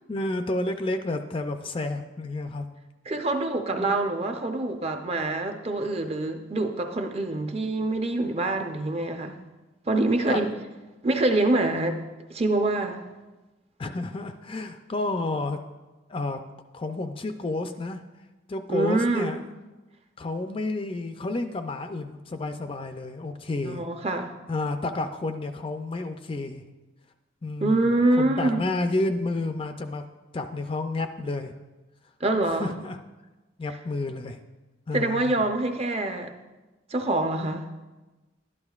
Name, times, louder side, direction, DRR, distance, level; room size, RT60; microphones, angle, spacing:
voice 1, 0.1-2.6 3.7-4.0 10.3-10.5 13.8-15.6 16.1-16.4 16.7-18.0 18.5-19.4 20.2-23.8 24.5-26.6 27.4-30.0 30.3-31.5 32.5-33.0 33.6-34.4 34.9-35.4, left 2 dB, 25° left, 7 dB, 0.4 m, -30 dB
voice 2, 3.1-9.4 9.9-10.5 11.0-12.0 12.3-13.1 18.7-19.3 23.6-24.3 27.6-28.6 32.2-32.8 34.9-36.3 36.9-37.7, right 2 dB, 30° right, 5 dB, 0.6 m, -25 dB
12.0 x 11.0 x 2.4 m, 1.1 s
head